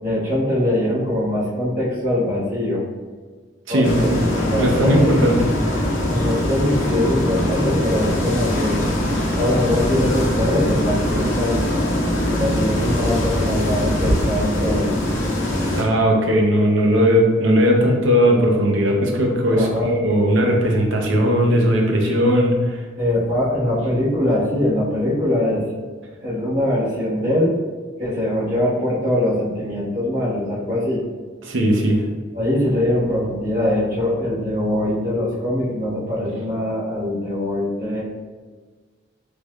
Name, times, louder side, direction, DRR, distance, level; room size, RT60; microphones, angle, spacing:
voice 1, 0.0-2.8 3.7-5.1 6.1-8.8 9.3-11.7 12.2-15.0 19.5-19.9 23.0-25.6 26.2-27.5 28.0-31.0 32.3-38.0, left 1 dB, 45° right, -9 dB, 1.4 m, -22 dB
voice 2, 3.7-4.2 4.6-5.4 15.7-22.8 31.4-32.0, equal, 80° right, 1 dB, 0.6 m, -18 dB
sound 1, 3.8-15.8, left 1 dB, 85° left, 0.7 m, -22 dB
3.3 x 3.1 x 2.3 m, 1.5 s
head